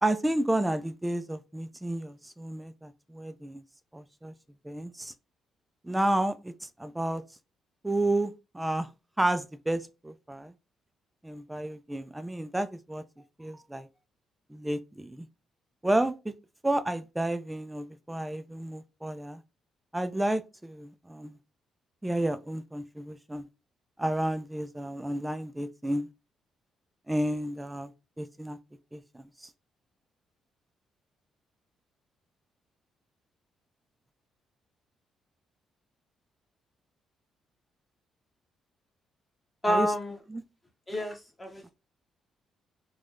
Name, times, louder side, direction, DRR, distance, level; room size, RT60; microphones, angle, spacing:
voice 1, 0.0-3.6 3.9-4.3 4.6-5.1 5.8-7.2 7.8-8.9 9.2-10.5 11.2-13.0 13.4-13.9 14.5-15.3 15.8-16.3 16.6-19.4 19.9-21.4 22.0-23.4 24.0-26.1 27.1-27.9 28.2-28.6 28.9-29.5 39.7-39.9 40.3-40.4, right 1 dB, 10° right, 0.4 m, -31 dB
voice 2, 39.6-40.1 40.9-41.7, equal, 15° left, 0.9 m, -29 dB
3.3 x 2.3 x 2.5 m
cardioid pair, 90°, 0 cm